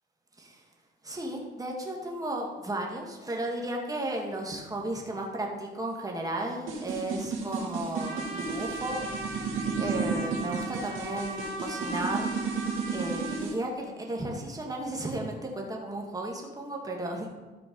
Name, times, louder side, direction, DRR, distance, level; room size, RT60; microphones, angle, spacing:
voice 1, 1.0-9.1 9.8-12.3 12.9-17.3, right 1 dB, 20° right, 0 dB, 2.0 m, -34 dB
sound 1, 6.7-13.5, right 5 dB, 90° right, 2.2 m, -32 dB
Trumpet, 7.9-13.4, right 2 dB, 60° right, 3.8 m, -38 dB
13.5 x 5.0 x 5.4 m, 1.2 s
cardioid pair, 90°, 20 cm